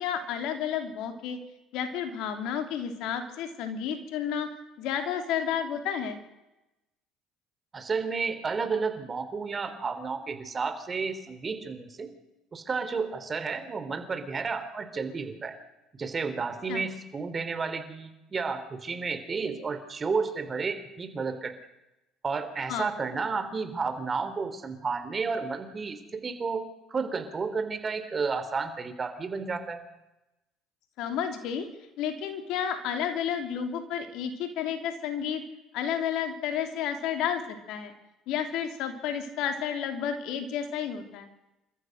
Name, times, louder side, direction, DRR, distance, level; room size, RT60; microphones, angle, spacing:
voice 1, 0.0-1.4 1.7-4.5 4.8-6.2 16.7-16.8 22.7-22.9 31.0-31.7 32.0-35.4 35.7-37.4 37.7-37.9 38.3-41.3, left 8 dB, 70° left, 6 dB, 3.1 m, -31 dB
voice 2, 7.7-12.1 12.5-15.5 16.0-21.5 22.2-26.6 26.9-29.8, right 4 dB, 35° right, 10 dB, 3.4 m, -32 dB
28.5 x 14.0 x 6.6 m, 0.96 s
hypercardioid pair, 70°, 0 cm